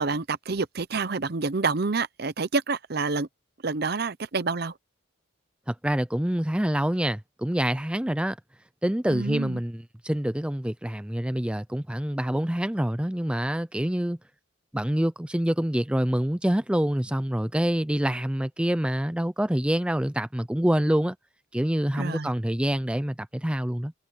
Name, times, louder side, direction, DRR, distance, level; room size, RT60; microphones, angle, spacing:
voice 1, 0.0-3.3 3.6-4.7 9.1-9.6 22.0-22.3, right 4 dB, 50° right, 0.7 m, -28 dB
voice 2, 5.7-8.4 8.8-14.2 14.7-21.2 21.5-23.9, equal, 5° right, 0.4 m, -26 dB
head